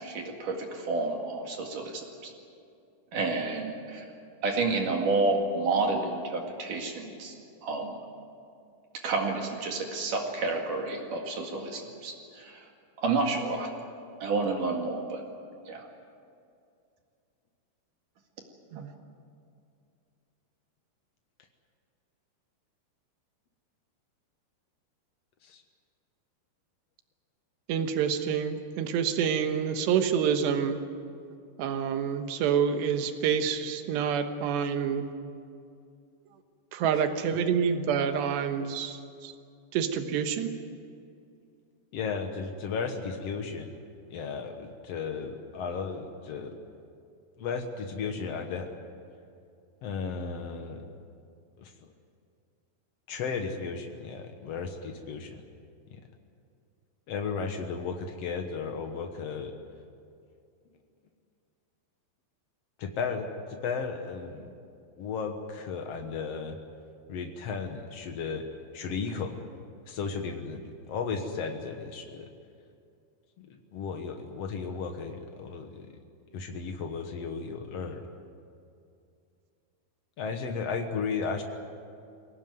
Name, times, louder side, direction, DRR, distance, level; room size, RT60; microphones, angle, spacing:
voice 1, 0.0-2.3 3.1-4.0 4.4-7.3 7.6-8.0 9.0-12.6 13.0-13.7 14.2-15.2 15.7-15.9, right 3 dB, 55° right, 2 dB, 3.3 m, -30 dB
voice 2, 27.7-30.8 31.6-35.1 36.7-39.3 39.7-40.5, right 7 dB, 85° right, 7 dB, 3.4 m, -27 dB
voice 3, 41.9-43.8 44.1-46.5 47.4-48.7 49.8-50.8 51.6-51.7 53.1-55.4 55.9-56.0 57.1-59.5 62.8-64.5 65.0-66.6 67.1-68.4 68.7-69.3 69.9-72.3 73.4-75.9 76.3-78.0 80.2-81.4, left 5 dB, 90° left, 4 dB, 1.4 m, -34 dB
23.0 x 17.5 x 9.4 m, 2.4 s
omnidirectional pair, 4.8 m